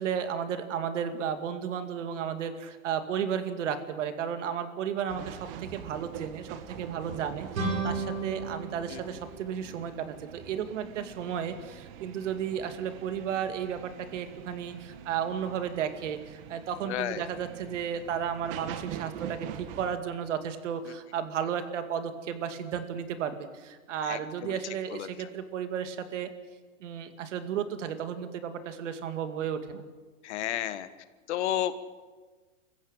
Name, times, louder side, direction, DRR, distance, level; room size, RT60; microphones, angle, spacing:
voice 1, 0.0-26.3 26.8-29.8, right 8 dB, 65° right, 9 dB, 2.4 m, -33 dB
sound 1, 5.1-20.0, right 9 dB, 45° right, 1.7 m, -44 dB
sound 2, 7.5-10.3, right 3 dB, 85° right, 7.9 m, -34 dB
voice 2, 16.8-17.2 24.0-24.6 24.9-25.1 30.2-30.9 31.3-31.8, left 12 dB, 60° left, 12 dB, 1.5 m, -32 dB
23.5 x 15.0 x 9.0 m, 1.3 s
hypercardioid pair, 140°, 39 cm